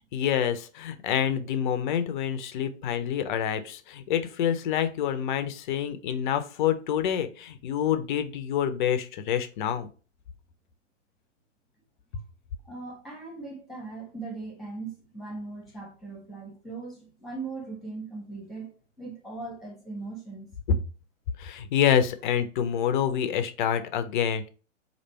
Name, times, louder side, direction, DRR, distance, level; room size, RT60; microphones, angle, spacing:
voice 1, 0.1-9.9 21.4-24.5, left 9 dB, 40° left, 0.6 m, -27 dB
voice 2, 12.6-20.5, right 3 dB, ahead, 1.3 m, -39 dB
3.2 x 2.5 x 4.3 m
figure-of-eight pair, 120°, 38 cm